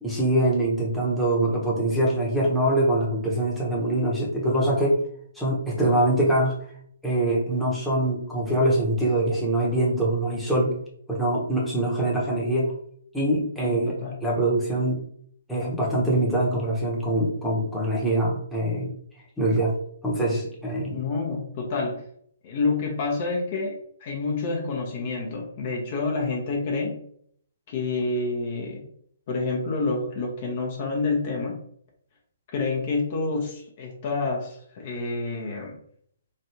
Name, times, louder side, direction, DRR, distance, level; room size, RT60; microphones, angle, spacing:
voice 1, 0.0-5.0 5.4-6.6 7.0-10.7 11.1-12.7 13.1-13.9 14.2-15.0 15.5-18.9 19.4-19.7 20.0-20.9, right 1 dB, ahead, -6 dB, 0.9 m, -23 dB
voice 2, 13.6-14.2 20.9-22.0 22.4-27.0 27.7-28.8 29.3-31.6 32.5-35.8, left 3 dB, 40° left, 0 dB, 0.8 m, -28 dB
3.1 x 2.6 x 2.9 m, 0.64 s
figure-of-eight pair, 130°, 0 cm